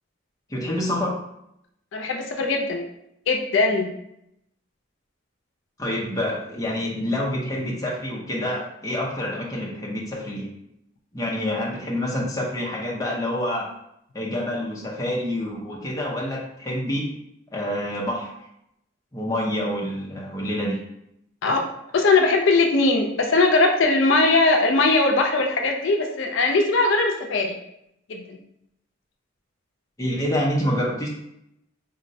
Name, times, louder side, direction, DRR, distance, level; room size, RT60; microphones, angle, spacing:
voice 1, 0.5-1.2 5.8-10.5 11.1-13.7 14.1-17.1 17.5-18.3 19.1-20.8 30.0-31.1, left 1 dB, 15° left, -3 dB, 0.5 m, -27 dB
voice 2, 1.9-2.9 3.3-3.9 21.4-21.6 21.9-27.5 28.1-28.4, left 3 dB, 75° left, 2 dB, 0.4 m, -20 dB
3.8 x 2.0 x 2.6 m, 0.79 s
head